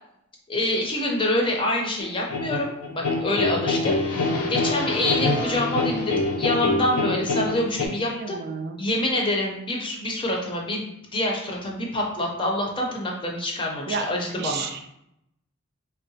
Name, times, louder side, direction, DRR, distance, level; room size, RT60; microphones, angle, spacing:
voice 1, 0.5-8.4 8.8-14.7, left 1 dB, 25° left, -1 dB, 0.5 m, -26 dB
sound 1, 2.0-7.9, left 2 dB, 70° left, 0.5 m, -25 dB
voice 2, 8.1-8.8 13.9-14.1 14.4-14.9, right 5 dB, 50° right, 5 dB, 0.4 m, -31 dB
3.7 x 2.0 x 2.7 m, 0.80 s
head